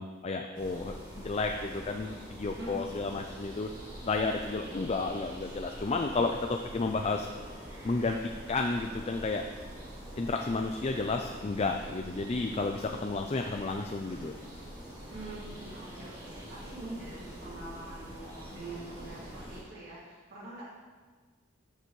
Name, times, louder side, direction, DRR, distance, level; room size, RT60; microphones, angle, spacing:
voice 1, 0.0-3.7 4.0-7.3 7.8-8.2 8.5-9.5 10.2-14.4, left 3 dB, 30° left, 3 dB, 0.4 m, -32 dB
sound 1, 0.5-19.6, equal, 20° right, 2.5 m, -45 dB
voice 2, 2.6-3.1 4.5-4.7 6.8-7.0 15.1-20.6, right 2 dB, 55° right, -8 dB, 2.4 m, -44 dB
12.5 x 6.7 x 3.2 m, 1.4 s
head